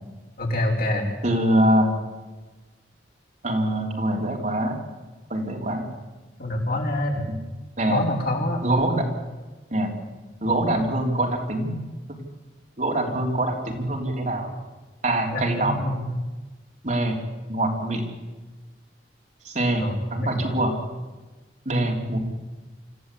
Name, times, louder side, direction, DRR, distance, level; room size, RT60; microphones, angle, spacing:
voice 1, 0.4-1.1 6.4-7.3 7.9-8.6 15.3-16.1 19.8-19.9 20.2-20.3, left 1 dB, 55° left, 0 dB, 4.9 m, -26 dB
voice 2, 1.2-1.9 3.4-4.8 5.3-5.9 7.3-7.4 7.8-8.0 8.6-9.1 9.7-10.0 10.4-11.8 12.1-12.2 12.8-14.5 15.0-15.9 16.8-17.2 17.5-18.0 19.4-20.8 21.7-22.2, right 1 dB, 40° right, 1 dB, 3.6 m, -24 dB
26.0 x 15.5 x 8.4 m, 1.2 s
head